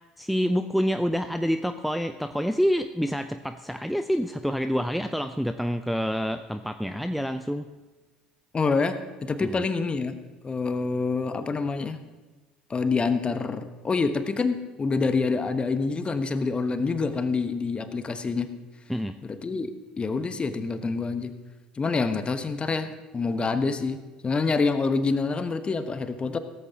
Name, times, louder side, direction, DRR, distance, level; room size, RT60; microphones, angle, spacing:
voice 1, 0.2-7.7 9.4-9.6 18.9-19.1, equal, ahead, 8 dB, 0.5 m, -27 dB
voice 2, 8.5-10.1 10.4-12.0 12.7-18.5 19.2-21.3 21.8-26.4, left 4 dB, 25° left, 9 dB, 1.2 m, -27 dB
17.0 x 14.5 x 2.9 m, 1.2 s
hypercardioid pair, 65°, 4 cm